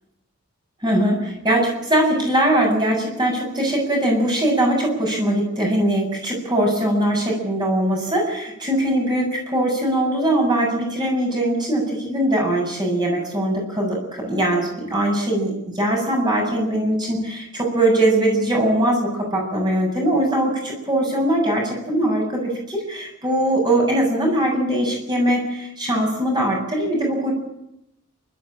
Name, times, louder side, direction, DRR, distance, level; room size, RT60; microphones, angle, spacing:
voice 1, 0.8-27.3, right 1 dB, 20° right, 0 dB, 7.8 m, -21 dB
28.5 x 13.5 x 9.0 m, 0.84 s
head